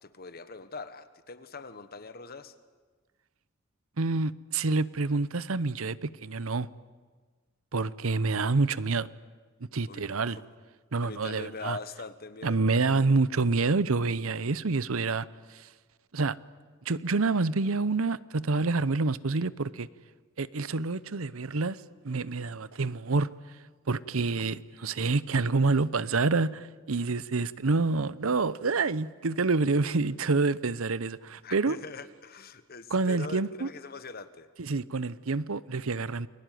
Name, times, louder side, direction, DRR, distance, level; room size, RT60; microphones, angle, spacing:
voice 1, 0.0-2.5 9.9-10.4 11.0-12.7 31.4-34.5, left 4 dB, 45° left, 1.3 m, -42 dB
voice 2, 4.0-6.7 7.7-9.1 9.7-10.4 10.9-11.8 12.4-15.3 16.1-16.4 16.9-19.9 20.4-21.8 22.0-23.3 23.9-31.8 32.9-33.7 34.6-36.3, right 3 dB, 75° right, 0.8 m, -27 dB
29.0 x 22.0 x 9.3 m
head